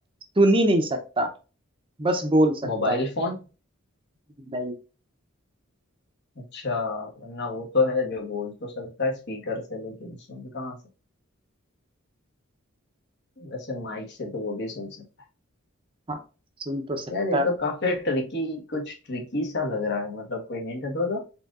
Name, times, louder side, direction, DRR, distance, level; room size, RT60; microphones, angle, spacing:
voice 1, 0.4-1.3 2.0-2.6 2.9-3.0 4.5-4.7 16.1-16.2 16.7-17.0 17.3-17.4, right 1 dB, 25° right, 0.7 m, -22 dB
voice 2, 2.6-3.4 6.4-10.8 13.4-15.1 17.1-21.2, left 3 dB, 55° left, 1.3 m, -29 dB
4.6 x 3.7 x 2.5 m
head